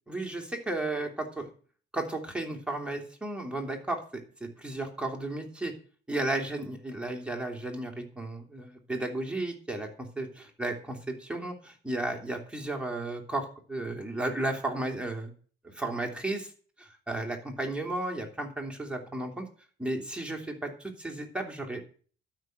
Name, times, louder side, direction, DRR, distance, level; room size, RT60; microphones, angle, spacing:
voice 1, 0.1-1.5 1.9-5.7 6.1-15.3 15.6-16.5 16.8-19.5 19.8-21.8, right 2 dB, 5° right, 2 dB, 3.2 m, -34 dB
12.5 x 6.2 x 7.8 m, 0.42 s
cardioid pair, 90°, 20 cm